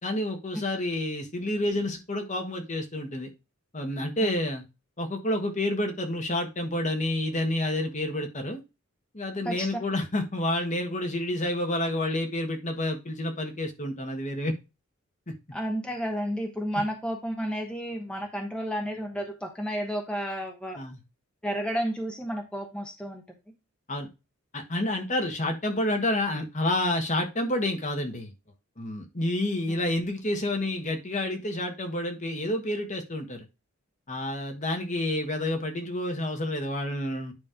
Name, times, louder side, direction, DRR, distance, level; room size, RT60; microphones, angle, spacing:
voice 1, 0.0-3.3 3.7-4.6 5.0-8.6 9.1-14.5 15.3-15.4 20.8-21.0 23.9-24.1 24.5-28.3 28.8-33.4 34.1-37.3, left 1 dB, 35° left, 4 dB, 1.5 m, -29 dB
voice 2, 15.5-20.8 21.4-23.2, equal, 5° left, 2 dB, 1.0 m, -31 dB
9.6 x 3.2 x 5.1 m, 0.26 s
head